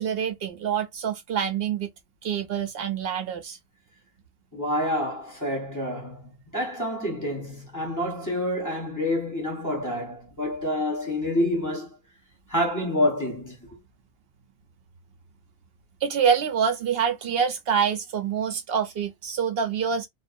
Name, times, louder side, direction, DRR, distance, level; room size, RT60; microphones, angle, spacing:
voice 1, 0.0-1.9 2.2-3.6 16.0-20.1, right 7 dB, 70° right, 0.8 m, -26 dB
voice 2, 4.5-6.2 6.5-12.0 12.5-13.7, left 1 dB, 20° left, 0.9 m, -27 dB
2.4 x 2.0 x 2.5 m
omnidirectional pair, 1.1 m